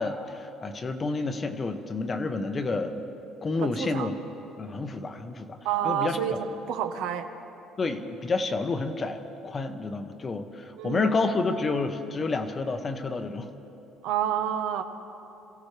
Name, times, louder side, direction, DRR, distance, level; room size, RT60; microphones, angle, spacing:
voice 1, 0.0-3.1 3.4-4.1 4.6-6.4 7.8-13.5, left 3 dB, 20° left, 8 dB, 0.8 m, -29 dB
voice 2, 3.6-4.1 5.6-6.3 6.7-7.3 10.8-11.2 14.0-14.8, right 10 dB, 75° right, 8 dB, 1.0 m, -28 dB
27.0 x 16.0 x 3.3 m, 2.9 s
cardioid pair, 170°, 0 cm